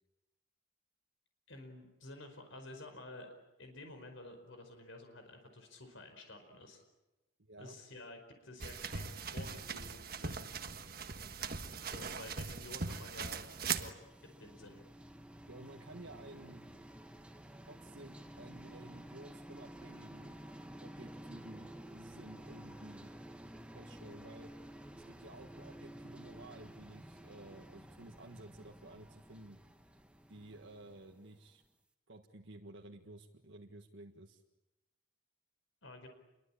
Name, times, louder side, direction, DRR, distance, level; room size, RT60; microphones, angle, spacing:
voice 1, 1.5-3.3 3.6-6.8 7.6-10.4 11.9-13.4 13.8-13.9 14.4-14.8 35.8-36.1, left 2 dB, 70° left, 5 dB, 4.8 m, -51 dB
voice 2, 7.4-7.8 15.5-16.6 17.7-20.3 20.8-23.1 23.7-24.5 25.1-29.6 30.3-31.6 32.1-34.4, right 2 dB, 70° right, 1 dB, 1.7 m, -53 dB
sound 1, 8.6-13.9, right 5 dB, 45° right, 1.5 m, -40 dB
sound 2, 12.5-31.6, right 1 dB, 5° right, 1.4 m, -52 dB
29.0 x 23.0 x 8.7 m, 1.0 s
head